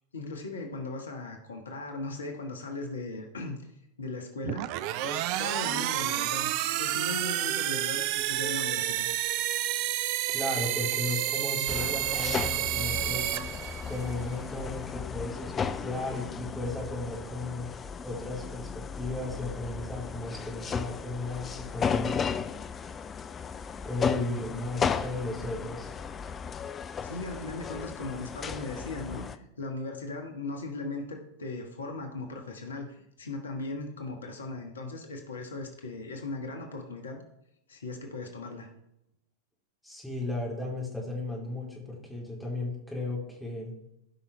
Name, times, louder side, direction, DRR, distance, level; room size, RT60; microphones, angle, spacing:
voice 1, 0.1-3.7 4.0-4.7 5.0-9.1 27.0-37.2 37.7-38.7, left 3 dB, 70° left, 4 dB, 1.4 m, -38 dB
sound 1, 4.4-14.1, right 14 dB, 45° right, 0.4 m, -30 dB
voice 2, 10.3-13.3 13.8-17.7 18.0-22.2 23.8-25.9 39.8-43.7, left 2 dB, ahead, -4 dB, 3.3 m, -35 dB
sound 2, 11.7-29.3, left 6 dB, 20° left, 0.5 m, -35 dB
16.5 x 5.6 x 3.4 m, 0.84 s
figure-of-eight pair, 90°, 0 cm